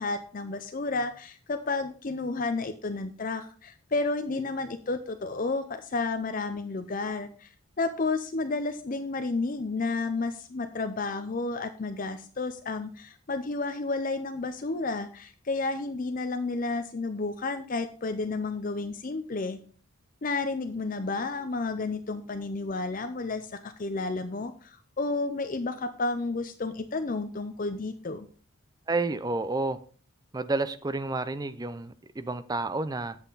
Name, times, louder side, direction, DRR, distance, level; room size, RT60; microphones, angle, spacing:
voice 1, 0.0-7.5 7.8-19.6 20.2-28.3, left 3 dB, 40° left, 0.5 m, -31 dB
voice 2, 28.9-29.8 30.3-33.2, right 2 dB, 15° right, 0.4 m, -30 dB
8.2 x 7.9 x 3.9 m
head